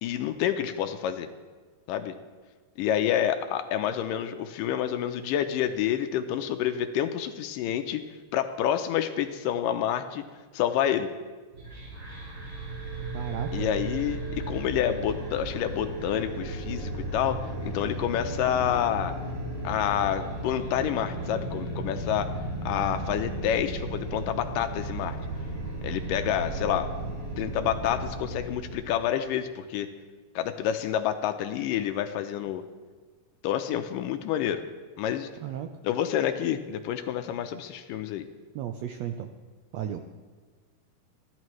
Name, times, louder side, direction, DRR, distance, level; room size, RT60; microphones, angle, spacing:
voice 1, 0.0-1.3 1.9-2.2 2.8-8.1 8.3-10.2 10.5-11.1 13.5-19.1 19.6-22.3 22.7-25.2 25.8-26.9 27.4-29.9 30.4-32.6 33.4-34.6 35.0-35.3 35.8-38.3, left 10 dB, 85° left, 7 dB, 2.3 m, -28 dB
sound 1, 11.5-29.0, right 2 dB, 40° right, 6.1 m, -35 dB
voice 2, 13.1-13.9 35.4-35.7 38.5-39.3 39.7-40.0, right 10 dB, 90° right, 6 dB, 1.4 m, -34 dB
30.0 x 11.5 x 3.2 m, 1.4 s
omnidirectional pair, 3.8 m